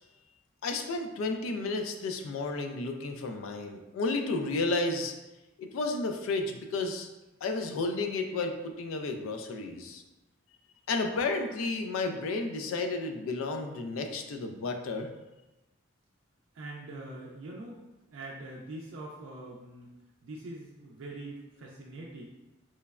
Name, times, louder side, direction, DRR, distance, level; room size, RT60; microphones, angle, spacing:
voice 1, 0.6-5.1 5.6-7.1 7.4-10.0 10.9-15.1, left 3 dB, 85° left, 5 dB, 0.3 m, -32 dB
voice 2, 16.5-17.8 18.1-19.9 20.2-22.3, right 2 dB, 75° right, -3 dB, 0.4 m, -43 dB
3.1 x 2.0 x 2.3 m, 1.0 s
head